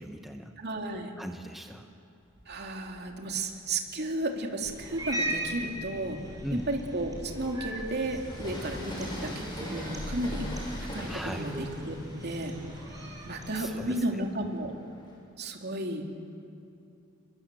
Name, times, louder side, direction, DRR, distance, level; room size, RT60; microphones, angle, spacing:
voice 1, 0.0-0.5 1.2-1.9 6.4-6.7 11.1-11.5 13.5-14.2, equal, ahead, 3 dB, 1.0 m, -39 dB
voice 2, 0.6-1.1 2.5-6.2 6.7-10.5 10.9-12.6 13.2-14.7 15.4-16.0, right 1 dB, 55° right, 2 dB, 2.9 m, -33 dB
Train, 2.3-4.0 4.6-15.2, equal, 25° left, 6.9 m, -43 dB
Cat, 4.6-13.6, right 1 dB, 20° right, 6.4 m, -38 dB
29.5 x 22.5 x 7.6 m, 2.7 s
head